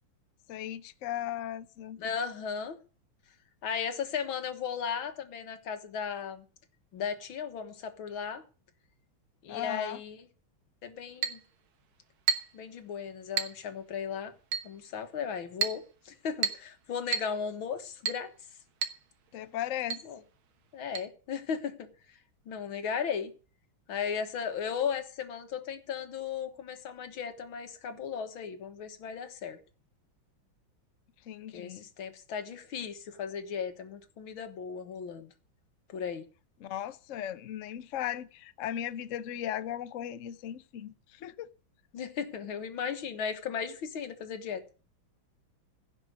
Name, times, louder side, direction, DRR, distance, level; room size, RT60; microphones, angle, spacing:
voice 1, 0.5-2.0 9.5-10.0 19.3-20.0 31.3-31.9 36.6-41.5, left 11 dB, 65° left, 0.8 m, -37 dB
voice 2, 2.0-2.8 3.6-6.4 6.9-8.4 9.4-10.2 10.8-11.4 12.5-14.3 14.6-18.3 20.1-20.2 20.7-22.2 22.5-23.3 23.9-29.6 31.5-35.3 35.9-36.3 41.9-44.6, left 7 dB, 80° left, 2.2 m, -36 dB
Chink clink, 11.2-11.4 12.3-12.6 13.4-13.6 14.5-14.7 15.6-15.8 16.4-16.7 17.1-17.3 18.1-18.3 18.8-19.0 19.3-19.4 19.9-20.1 20.9-21.0, right 6 dB, 85° right, 2.1 m, -31 dB
16.0 x 6.0 x 7.8 m
omnidirectional pair, 2.2 m